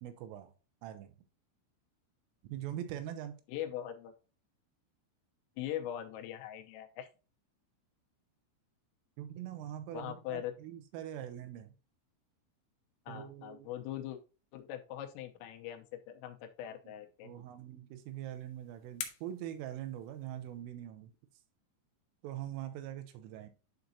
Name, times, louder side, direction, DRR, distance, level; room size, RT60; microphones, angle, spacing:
voice 1, 0.0-0.5 0.8-1.2 2.4-3.4 9.2-11.7 13.1-13.7 16.7-16.9 17.2-21.1 22.2-23.5, right 11 dB, 90° right, 3.2 m, -43 dB
voice 2, 3.5-4.1 5.6-7.1 9.9-10.5 13.1-14.2 14.5-17.3, left 11 dB, 90° left, 3.4 m, -41 dB
sound 1, 17.9-20.6, left 9 dB, 75° left, 2.7 m, -48 dB
11.5 x 3.9 x 2.7 m
omnidirectional pair, 5.8 m